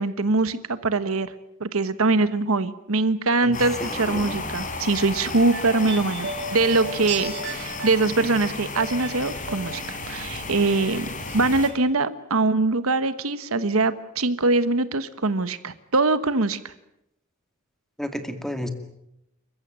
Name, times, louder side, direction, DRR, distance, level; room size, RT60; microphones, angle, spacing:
voice 1, 0.0-1.3 1.6-11.1 11.3-16.7, right 3 dB, 75° right, 13 dB, 1.3 m, -23 dB
voice 2, 3.4-4.3 18.0-18.7, equal, ahead, 7 dB, 2.2 m, -32 dB
sound 1, 3.5-11.7, left 3 dB, 40° left, 4.0 m, -33 dB
sound 2, 4.9-10.2 10.4-11.4 11.6-11.7, right 3 dB, 55° right, 5.9 m, -36 dB
28.5 x 15.0 x 9.1 m, 0.81 s
head